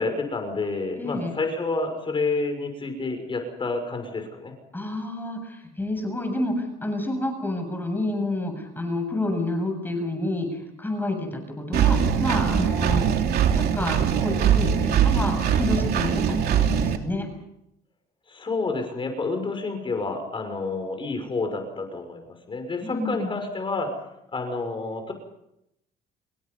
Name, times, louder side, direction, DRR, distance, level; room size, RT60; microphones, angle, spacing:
voice 1, 0.0-4.5 18.3-23.9 24.3-25.1, left 3 dB, 30° left, 5 dB, 6.2 m, -29 dB
voice 2, 1.0-1.3 4.7-10.5 10.8-13.1 13.5-17.3 22.8-23.3, left 1 dB, 10° left, 4 dB, 7.4 m, -29 dB
Engine, 11.7-17.0, right 8 dB, 65° right, 3.2 m, -22 dB
29.0 x 23.5 x 5.6 m, 0.80 s
cardioid pair, 110°, 17 cm